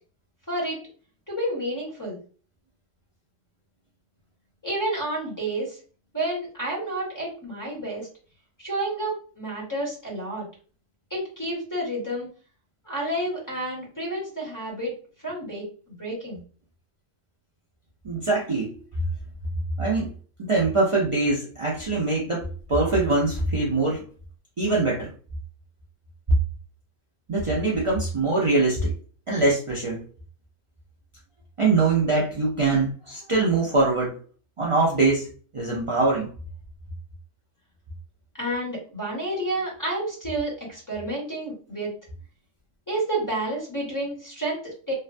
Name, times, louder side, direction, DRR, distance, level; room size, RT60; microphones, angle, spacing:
voice 1, 0.5-0.8 1.3-2.2 4.6-5.8 6.1-8.1 8.6-10.4 11.1-12.3 12.8-14.9 15.2-16.4 38.4-41.9 42.9-44.9, right 1 dB, 15° left, -5 dB, 1.2 m, -30 dB
voice 2, 18.0-18.7 19.8-20.1 20.4-24.0 24.6-25.1 27.3-28.9 29.3-30.0 31.6-34.2 34.6-35.3 35.5-36.3, right 3 dB, 55° right, -5 dB, 0.3 m, -23 dB
2.9 x 2.1 x 2.5 m, 0.40 s
omnidirectional pair, 1.4 m